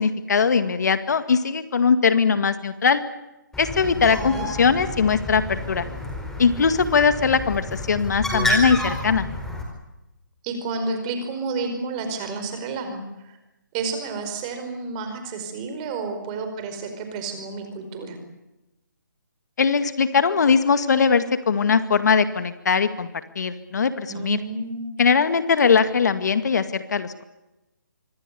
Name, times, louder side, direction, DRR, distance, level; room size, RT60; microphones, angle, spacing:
voice 1, 0.0-3.0 3.6-5.9 6.4-9.3 19.6-23.1 23.4-24.4 25.0-27.2, left 5 dB, 60° left, 11 dB, 2.1 m, -20 dB
Bird, 3.5-9.6, left 1 dB, 5° left, 4.5 m, -29 dB
voice 2, 3.8-4.5 10.4-13.4 13.7-18.2 24.1-24.9, right 4 dB, 20° right, 7 dB, 5.0 m, -30 dB
26.5 x 25.5 x 6.9 m, 0.96 s
hypercardioid pair, 160°, 11 cm